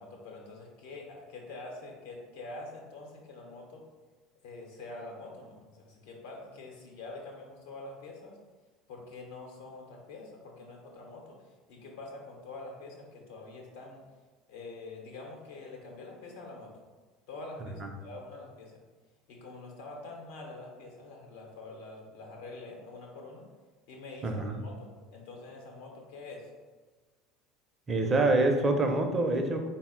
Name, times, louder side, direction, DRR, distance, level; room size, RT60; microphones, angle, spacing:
voice 1, 0.0-3.8 4.4-8.4 8.9-14.0 14.5-16.7 17.3-18.7 19.3-23.5 23.9-26.5, left 2 dB, 75° left, 0 dB, 0.8 m, -45 dB
voice 2, 24.2-24.6 27.9-29.7, right 2 dB, 30° right, 4 dB, 0.6 m, -26 dB
4.0 x 2.0 x 3.8 m, 1.4 s
hypercardioid pair, 70°, 0 cm